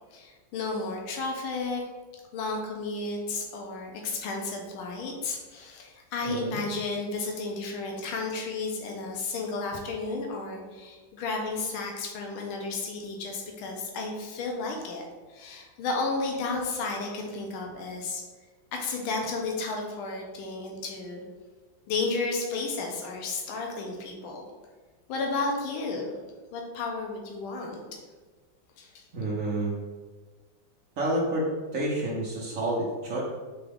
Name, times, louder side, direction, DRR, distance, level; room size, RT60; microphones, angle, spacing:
voice 1, 0.1-1.8 2.3-15.0 15.3-18.2 18.7-21.2 21.9-24.5 25.1-26.1 26.5-27.8 28.8-29.0, left 3 dB, 90° left, 1 dB, 1.5 m, -32 dB
voice 2, 6.2-6.6 29.1-29.7 31.0-31.5 31.7-33.2, right 1 dB, 70° right, -4 dB, 0.7 m, -29 dB
3.9 x 3.5 x 3.4 m, 1.3 s
omnidirectional pair, 2.3 m